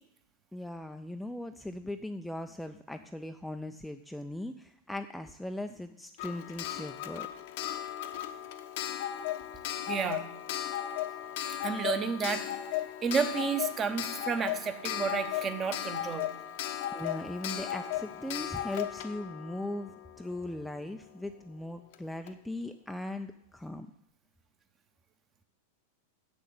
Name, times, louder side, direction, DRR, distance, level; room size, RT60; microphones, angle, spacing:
voice 1, 0.5-7.3 16.9-23.9, left 1 dB, ahead, 6 dB, 0.4 m, -39 dB
Clock, 6.2-20.8 21.9-22.0 22.3-22.4, left 11 dB, 50° left, 0.7 m, -36 dB
voice 2, 9.9-10.2 11.4-12.5 13.0-16.3, right 6 dB, 25° right, 8 dB, 0.9 m, -31 dB
7.7 x 6.3 x 7.7 m, 0.77 s
figure-of-eight pair, 90°, 0 cm